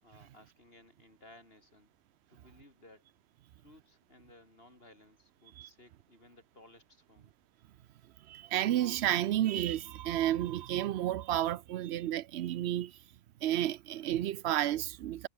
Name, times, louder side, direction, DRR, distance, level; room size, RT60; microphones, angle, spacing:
voice 1, 0.0-1.9 2.3-3.1 3.6-7.3, left 1 dB, 65° left, 5.8 m, -59 dB
voice 2, 8.3-12.9 13.4-15.3, right 12 dB, 85° right, 0.8 m, -31 dB
omnidirectional pair, 1.1 m